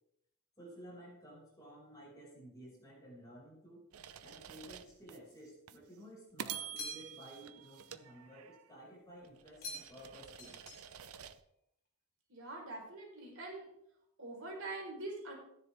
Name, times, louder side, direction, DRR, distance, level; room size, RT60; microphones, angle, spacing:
voice 1, 0.6-3.8 4.2-10.6, right 1 dB, 15° left, -4 dB, 5.6 m, -54 dB
sound 1, 3.9-5.2 5.7-5.8 6.4-8.8 9.2-11.4, right 9 dB, 85° right, 0.7 m, -48 dB
sound 2, 6.8-7.4 9.6-10.1 10.4-11.1, left 2 dB, 45° left, 4.6 m, -47 dB
voice 2, 12.3-13.7 14.2-15.3, right 2 dB, 65° right, -1 dB, 4.4 m, -44 dB
15.0 x 10.5 x 3.6 m, 0.76 s
head